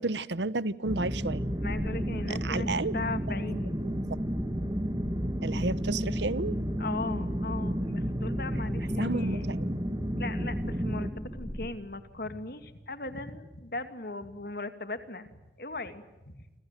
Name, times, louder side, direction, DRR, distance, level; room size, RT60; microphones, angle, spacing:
voice 1, 0.0-1.4 2.4-2.9 3.8-4.2 5.4-6.5 9.0-9.8, right 3 dB, 90° right, 18 dB, 1.0 m, -32 dB
sound 1, 0.9-11.1, equal, 20° right, 1.8 m, -31 dB
sound 2, 1.3-11.7, equal, 5° left, 2.7 m, -42 dB
voice 2, 1.6-3.8 6.8-9.5 10.2-16.4, left 2 dB, 60° left, 10 dB, 2.4 m, -38 dB
29.0 x 26.5 x 7.6 m, 1.1 s
head